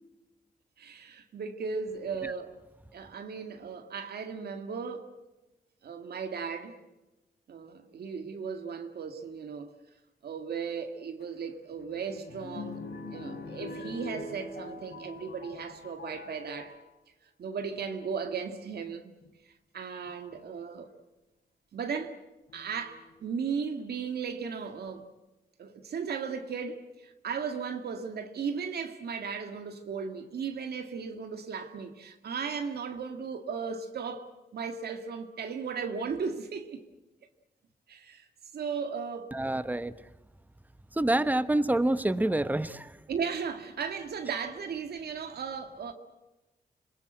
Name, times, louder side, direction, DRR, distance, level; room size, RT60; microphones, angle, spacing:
voice 1, 0.8-2.5 2.9-5.1 5.8-6.8 7.5-9.7 10.2-12.8 13.1-16.8 17.4-19.2 19.7-20.9 21.7-22.2 22.5-25.1 25.6-36.8 37.9-38.3 38.5-39.3 43.1-45.9, right 6 dB, 85° right, 2.1 m, -36 dB
sound 1, 11.2-16.8 17.6-18.0 19.3-19.4 20.1-20.4 22.5-23.1 23.8-23.9 24.1-24.2, left 2 dB, 85° left, 4.1 m, -43 dB
voice 2, 39.3-39.9 41.0-42.9, right 1 dB, 10° right, 1.1 m, -27 dB
27.5 x 21.5 x 7.9 m
cardioid pair, 90°, 16 cm